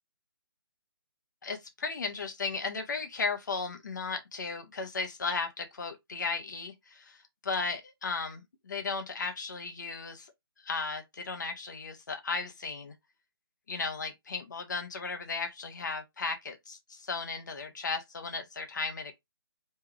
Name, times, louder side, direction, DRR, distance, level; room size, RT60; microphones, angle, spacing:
voice 1, 1.4-7.2 7.4-10.3 10.6-12.9 13.7-19.1, left 4 dB, 50° left, 1.1 m, -35 dB
4.7 x 3.5 x 3.0 m
figure-of-eight pair, 140°, 13 cm